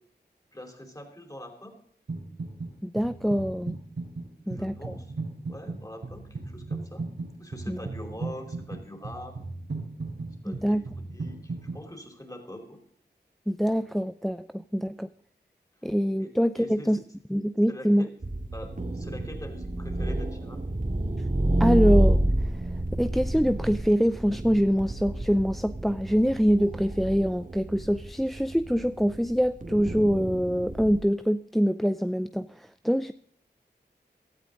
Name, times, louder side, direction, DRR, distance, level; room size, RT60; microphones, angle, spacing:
voice 1, 0.5-1.8 4.4-5.1 5.5-7.0 7.4-9.3 10.4-10.8 11.1-12.8 16.2-16.3 16.6-17.0 17.7-18.1 18.5-20.6, left 1 dB, 20° left, 4 dB, 4.5 m, -43 dB
sound 1, 2.1-2.7 3.0-11.8, right 3 dB, 85° right, 4.7 m, -36 dB
voice 2, 2.8-3.8 4.5-4.9 7.7-7.8 10.5-10.8 13.5-15.1 15.8-17.0 17.3-18.1 21.6-22.2 22.5-22.7 23.0-33.1, equal, ahead, 13 dB, 0.6 m, -25 dB
sound 2, 18.2-31.0, right 1 dB, 45° right, 2.2 m, -29 dB
17.0 x 12.5 x 4.0 m, 0.63 s
cardioid pair, 45°, 18 cm